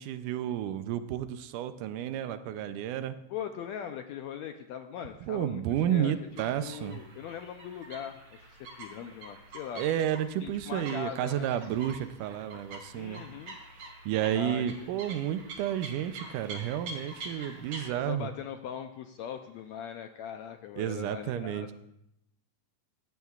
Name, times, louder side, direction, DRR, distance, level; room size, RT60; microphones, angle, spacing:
voice 1, 0.0-3.2 5.2-7.0 9.0-9.1 9.7-13.2 13.8-18.3 20.8-21.7, right 11 dB, 80° right, 11 dB, 2.1 m, -31 dB
voice 2, 3.3-6.1 6.6-9.8 10.4-11.5 12.9-13.6 14.3-14.9 18.1-21.7, left 9 dB, 80° left, 6 dB, 1.6 m, -40 dB
sound 1, 6.2-17.9, right 2 dB, 50° right, 3.0 m, -46 dB
18.5 x 15.5 x 2.4 m, 0.81 s
omnidirectional pair, 3.8 m